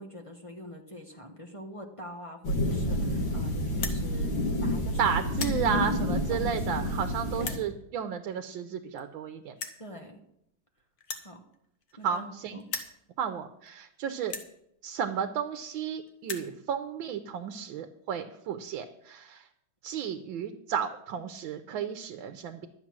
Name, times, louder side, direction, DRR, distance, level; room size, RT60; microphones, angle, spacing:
voice 1, 0.0-5.2 5.5-6.9 7.4-7.6 9.8-10.2 11.2-11.4 12.0-12.7, right 1 dB, 25° left, 2 dB, 0.8 m, -43 dB
sound 1, 2.4-7.6, left 1 dB, 80° left, 2.7 m, -29 dB
sound 2, 3.7-4.0 4.7-4.9 5.2-5.6 6.4-6.5 7.4-7.6 8.7-8.8 9.0-9.1 9.6-9.8 11.0-12.3 12.6-13.0 13.7-13.8 14.2-14.5 15.4-15.5 15.7-15.8 16.1-16.5, left 5 dB, 55° left, 1.5 m, -37 dB
voice 2, 5.0-9.5 12.0-12.6 13.2-14.4 14.8-19.4 19.8-22.7, right 8 dB, 80° right, 8 dB, 1.5 m, -33 dB
12.0 x 7.9 x 6.1 m, 0.76 s
omnidirectional pair, 2.1 m